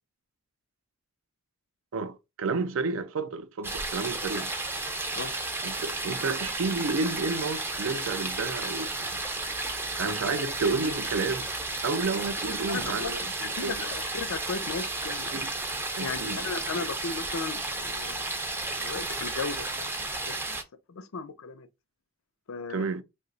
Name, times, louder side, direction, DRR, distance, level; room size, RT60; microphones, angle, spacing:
voice 1, 1.9-4.5 5.6-9.5 10.0-11.5 11.8-13.9 15.3-15.5 16.0-16.5 22.7-23.0, right 4 dB, 70° right, 0.4 m, -31 dB
sound 1, 3.6-20.6, right 2 dB, 10° right, 0.4 m, -33 dB
voice 2, 12.7-15.3 16.0-18.3 18.8-20.6 20.9-21.7 22.5-22.9, left 4 dB, 80° left, 0.5 m, -36 dB
2.8 x 2.2 x 3.8 m
head